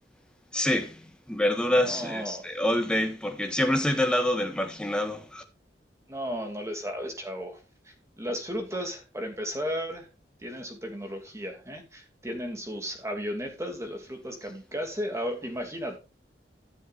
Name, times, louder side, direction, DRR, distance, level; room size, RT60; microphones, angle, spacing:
voice 1, 0.5-5.4, left 1 dB, 5° left, 1.4 m, -26 dB
voice 2, 1.7-2.5 6.1-7.6 7.9-10.1 10.4-16.0, equal, 15° right, 2.6 m, -34 dB
14.5 x 7.1 x 2.6 m
head